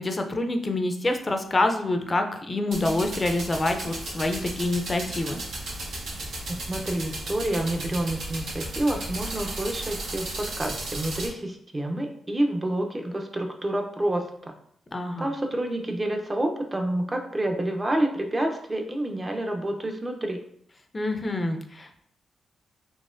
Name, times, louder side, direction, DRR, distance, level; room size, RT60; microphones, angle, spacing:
voice 1, 0.0-5.4 14.9-15.3 20.9-22.0, left 2 dB, 30° left, 5 dB, 0.5 m, -26 dB
sound 1, 2.7-11.3, right 2 dB, 75° right, 1.0 m, -35 dB
voice 2, 6.5-14.5 15.2-20.4, right 1 dB, 25° right, 3 dB, 0.6 m, -28 dB
4.0 x 3.0 x 2.5 m, 0.68 s
cardioid pair, 65°, 0 cm